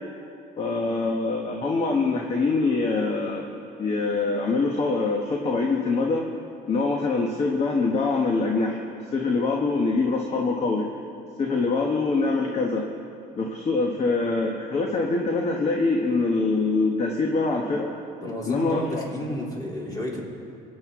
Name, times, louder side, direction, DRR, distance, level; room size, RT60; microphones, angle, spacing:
voice 1, 0.6-3.5 3.8-6.3 6.7-8.8 9.1-10.9 11.4-12.9 13.3-18.0 18.5-19.1, left 3 dB, 40° left, 1 dB, 1.2 m, -24 dB
voice 2, 18.2-20.2, equal, 20° left, -3 dB, 3.1 m, -31 dB
24.5 x 8.7 x 3.7 m, 2.5 s
cardioid pair, 110°, 17 cm